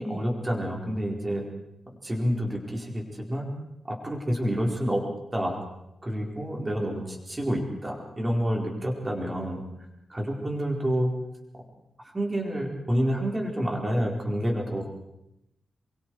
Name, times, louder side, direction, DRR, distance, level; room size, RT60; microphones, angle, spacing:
voice 1, 0.0-1.4 2.0-3.5 3.8-5.0 5.3-5.6 6.0-9.6 10.1-11.1 12.1-14.9, equal, 15° right, 0 dB, 4.6 m, -28 dB
28.5 x 23.5 x 4.9 m, 0.86 s
wide cardioid pair, 165°, 0 cm